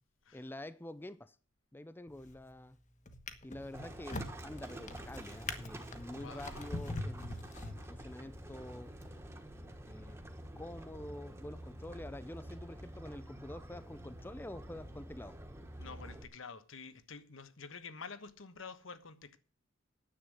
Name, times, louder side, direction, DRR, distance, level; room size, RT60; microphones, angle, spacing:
voice 1, 0.3-1.4 1.7-2.8 3.4-7.4 7.8-8.9 9.9-10.2 10.6-15.4, left 1 dB, 10° left, 0.5 m, -47 dB
Drawer open or close, 2.1-2.5 3.1-8.2 8.9-9.1, left 2 dB, 40° left, 1.3 m, -43 dB
Livestock farm animals working animals, 3.7-16.2, right 1 dB, 15° right, 1.5 m, -48 dB
voice 2, 6.1-6.7 15.8-19.4, left 5 dB, 80° left, 1.2 m, -49 dB
10.0 x 8.1 x 7.6 m
head